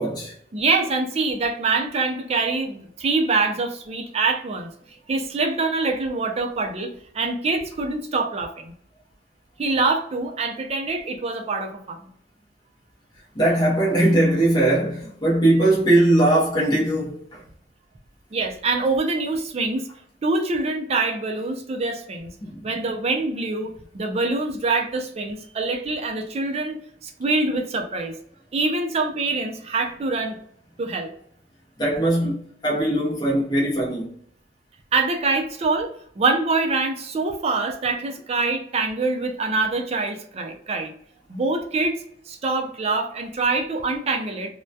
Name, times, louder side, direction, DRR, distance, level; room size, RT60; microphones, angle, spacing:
voice 1, 0.0-0.3 13.3-17.4 22.4-22.6 31.8-34.1, right 1 dB, 25° left, 0.7 m, -20 dB
voice 2, 0.5-4.7 5.1-8.7 9.6-12.0 18.3-19.9 20.2-22.3 22.6-26.8 27.0-28.1 28.5-30.4 30.8-31.1 34.9-35.9 36.2-40.9 41.3-44.5, right 3 dB, 35° right, 0.4 m, -25 dB
2.2 x 2.2 x 2.6 m
head